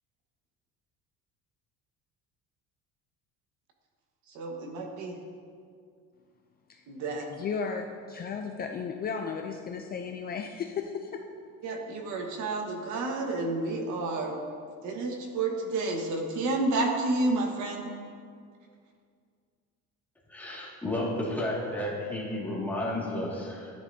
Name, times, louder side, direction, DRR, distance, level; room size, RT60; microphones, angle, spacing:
voice 1, 4.3-5.1 6.9-7.2 11.6-14.4 14.8-17.9, right 2 dB, 65° right, 2 dB, 1.5 m, -30 dB
voice 2, 7.3-11.2, left 6 dB, 30° left, 3 dB, 0.4 m, -34 dB
voice 3, 20.3-23.7, left 1 dB, 5° left, -6 dB, 2.0 m, -32 dB
13.0 x 10.0 x 2.7 m, 2.2 s
cardioid pair, 160°, 31 cm